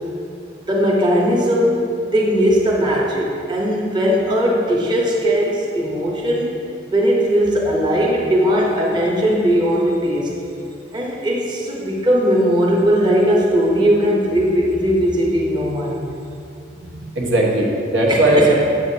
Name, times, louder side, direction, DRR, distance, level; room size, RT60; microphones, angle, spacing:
voice 1, 0.7-6.6 6.9-10.3 10.9-16.1 18.1-18.5, equal, 25° right, -3 dB, 0.8 m, -18 dB
voice 2, 16.8-18.5, right 1 dB, 90° right, -3 dB, 1.2 m, -17 dB
7.8 x 7.5 x 2.7 m, 2.7 s
head